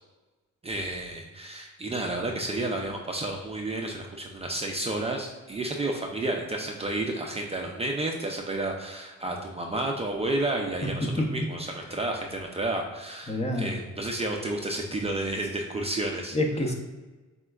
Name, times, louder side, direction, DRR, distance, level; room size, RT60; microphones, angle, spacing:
voice 1, 0.6-16.4, right 2 dB, 20° right, 1 dB, 0.4 m, -31 dB
voice 2, 10.8-11.3 13.3-13.8 16.3-16.7, left 1 dB, 20° left, 3 dB, 0.6 m, -27 dB
4.3 x 3.5 x 2.3 m, 1.2 s
cardioid pair, 90°, 30 cm